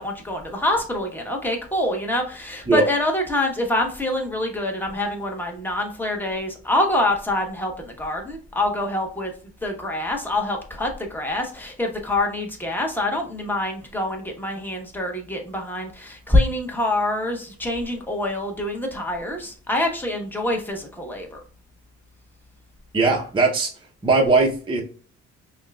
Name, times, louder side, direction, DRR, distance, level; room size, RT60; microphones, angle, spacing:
voice 1, 0.0-9.3 9.6-21.4, left 1 dB, 5° left, 2 dB, 1.0 m, -25 dB
voice 2, 22.9-23.7 24.0-24.8, right 3 dB, 15° right, -1 dB, 0.7 m, -19 dB
5.6 x 2.3 x 2.3 m, 0.40 s
cardioid pair, 90°, 30 cm